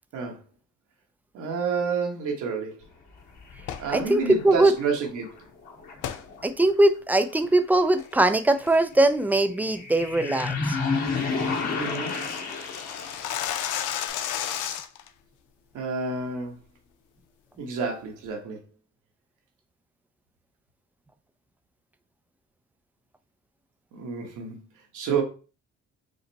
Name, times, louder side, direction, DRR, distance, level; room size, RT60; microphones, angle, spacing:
voice 1, 1.3-2.8 3.8-5.5 11.7-12.1 15.7-16.6 17.6-18.6 23.9-24.6 24.9-25.2, right 5 dB, 80° right, 1.2 m, -29 dB
sound 1, 3.5-5.3 5.6-6.5 9.6-14.1, left 4 dB, 65° left, 2.4 m, -31 dB
sound 2, 3.6-3.9 6.0-6.2 6.7-6.8 7.3-7.6 8.0-8.3 8.7-8.9 9.3-9.4 9.8-10.0 10.4-10.5 10.8-10.9 11.1-11.2 11.4-15.1, left 10 dB, 85° left, 0.5 m, -33 dB
voice 2, 3.9-4.7 6.4-10.8, right 2 dB, 5° right, 0.4 m, -21 dB
5.2 x 2.1 x 4.0 m
cardioid pair, 90°, 30 cm